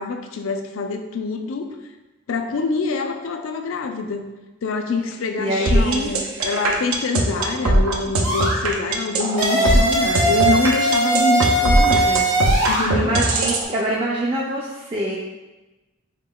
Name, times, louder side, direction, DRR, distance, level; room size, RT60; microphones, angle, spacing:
voice 1, 0.0-1.7 2.3-4.3 4.6-12.1 12.7-13.1, left 4 dB, 70° left, 5 dB, 0.4 m, -25 dB
voice 2, 5.4-6.1 9.5-9.8 10.0-10.3 11.8-12.3 12.9-15.2, right 1 dB, 25° right, -5 dB, 0.3 m, -25 dB
sound 1, 5.7-13.6, right 2 dB, 85° right, 0.5 m, -20 dB
sound 2, 8.2-8.6 9.4-12.9, right 2 dB, 60° right, 1.2 m, -20 dB
3.9 x 3.6 x 2.2 m, 1.1 s
head